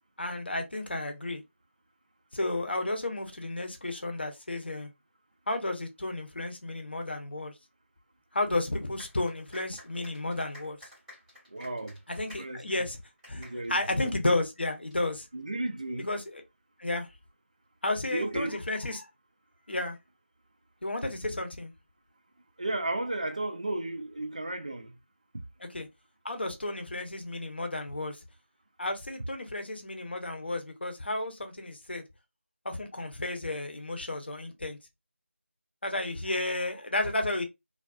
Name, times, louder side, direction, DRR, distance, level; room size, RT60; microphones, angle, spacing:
voice 1, 0.2-1.4 2.3-4.9 5.5-7.5 8.3-10.8 12.2-13.0 13.3-13.4 13.7-15.3 16.0-16.4 16.8-17.1 17.8-19.1 19.7-20.0 20.8-21.7 25.7-25.9 26.2-28.2 28.8-32.0 32.6-34.8 35.8-37.4, left 2 dB, 50° left, 0.7 m, -32 dB
sound 1, 9.0-14.9, left 1 dB, ahead, 0.8 m, -53 dB
voice 2, 11.5-12.0 12.4-12.6 13.3-14.0 15.3-16.1 18.1-18.6 22.6-24.9 25.3-25.4, right 2 dB, 35° right, 0.3 m, -33 dB
2.4 x 2.3 x 2.2 m
figure-of-eight pair, 165°, 7 cm